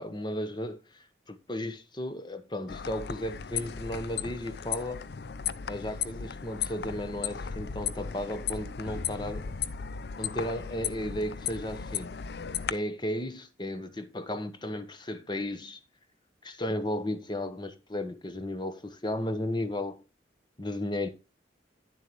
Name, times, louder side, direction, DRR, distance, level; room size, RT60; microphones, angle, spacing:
voice 1, 0.0-5.0 5.7-9.5 10.2-12.1 12.7-15.8 16.4-20.0 20.6-21.1, left 1 dB, 25° left, 1.1 m, -34 dB
sound 1, 2.7-12.7, left 7 dB, 60° left, 0.5 m, -36 dB
10.5 x 7.4 x 3.1 m
head